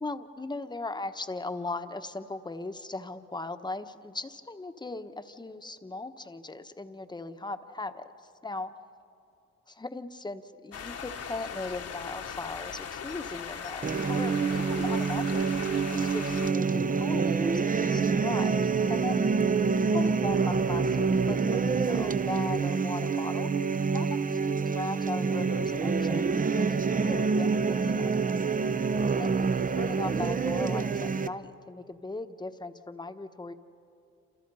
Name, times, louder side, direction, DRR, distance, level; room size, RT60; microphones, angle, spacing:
voice 1, 0.0-8.1 8.4-8.7 9.7-15.5 15.9-18.6 18.9-19.3 19.9-23.5 23.9-28.4 29.2-33.5, left 2 dB, 15° left, 9 dB, 1.2 m, -38 dB
sound 1, 10.7-16.5, left 7 dB, 55° left, 1.5 m, -39 dB
sound 2, 13.8-31.3, right 5 dB, 25° right, 0.8 m, -27 dB
28.0 x 27.0 x 5.6 m, 2.6 s
cardioid pair, 90°, 30 cm